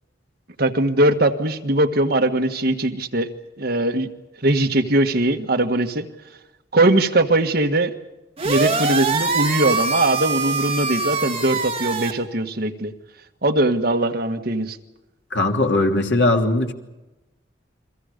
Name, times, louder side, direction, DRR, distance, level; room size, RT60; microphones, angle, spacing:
voice 1, 0.6-3.3 3.6-4.1 4.4-6.1 6.7-7.9 8.4-12.9 13.4-14.8, right 1 dB, 55° right, 5 dB, 1.7 m, -20 dB
sound 1, 8.4-12.1, right 4 dB, 30° right, 2.4 m, -23 dB
voice 2, 15.3-16.7, left 2 dB, 65° left, 2 dB, 3.0 m, -19 dB
30.0 x 23.0 x 5.3 m, 1.0 s
head